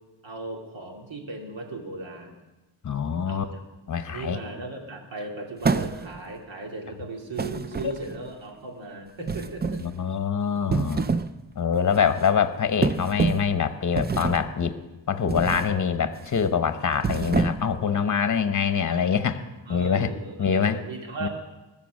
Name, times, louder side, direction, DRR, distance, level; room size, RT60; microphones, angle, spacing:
voice 1, 0.2-2.4 3.3-3.5 4.1-9.8 19.7-21.3, right 2 dB, 80° right, 1 dB, 2.5 m, -37 dB
voice 2, 2.8-3.4 3.9-4.4 7.8-7.9 9.8-11.1 11.6-14.7 15.1-19.4 19.7-20.1 20.4-20.8 21.2-21.3, left 7 dB, 40° left, 11 dB, 0.8 m, -24 dB
sound 1, 5.6-6.3 7.4-8.3 9.3-9.9 10.6-11.4 11.7-12.0 12.8-13.5 14.0-14.5 15.3-15.7 16.1-16.4 16.9-17.8, right 4 dB, 25° right, 0.4 m, -27 dB
21.0 x 7.2 x 6.3 m, 1.1 s
wide cardioid pair, 140°, 45 cm